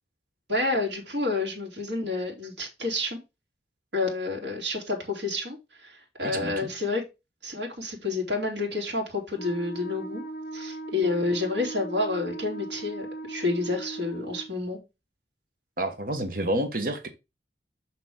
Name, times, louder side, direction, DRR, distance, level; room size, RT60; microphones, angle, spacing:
voice 1, 0.5-3.2 3.9-7.0 7.4-10.2 10.5-14.8, left 2 dB, 75° right, 3.3 m, -29 dB
voice 2, 6.2-6.7 15.8-17.1, right 1 dB, 50° right, 1.1 m, -29 dB
Wind instrument woodwind instrument, 9.3-14.5, right 2 dB, 50° left, 2.5 m, -38 dB
6.4 x 5.9 x 3.7 m
head